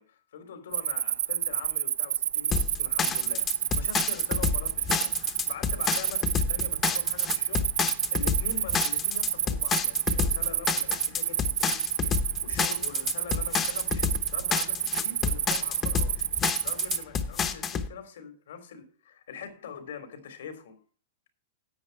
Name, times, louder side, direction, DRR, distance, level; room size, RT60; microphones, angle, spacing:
voice 1, 0.0-3.4 3.7-7.7 8.1-16.3 16.6-20.8, left 6 dB, 80° left, 3.2 m, -43 dB
Cricket, 0.7-17.0, right 10 dB, 75° right, 0.4 m, -29 dB
sound 1, 2.5-17.9, left 6 dB, 15° left, 0.8 m, -29 dB
10.5 x 8.1 x 4.5 m
supercardioid pair, 175°, 0 cm